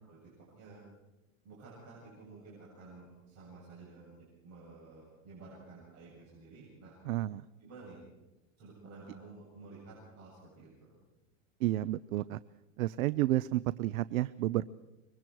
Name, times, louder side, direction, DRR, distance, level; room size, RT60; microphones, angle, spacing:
voice 1, 0.1-0.8 1.4-7.0 7.6-8.0 8.6-10.9, right 3 dB, 35° right, -6 dB, 8.0 m, -52 dB
voice 2, 7.1-7.4 11.6-12.4 12.8-14.6, right 15 dB, 85° right, 18 dB, 0.6 m, -31 dB
24.5 x 22.5 x 4.7 m, 1.0 s
supercardioid pair, 145°, 40 cm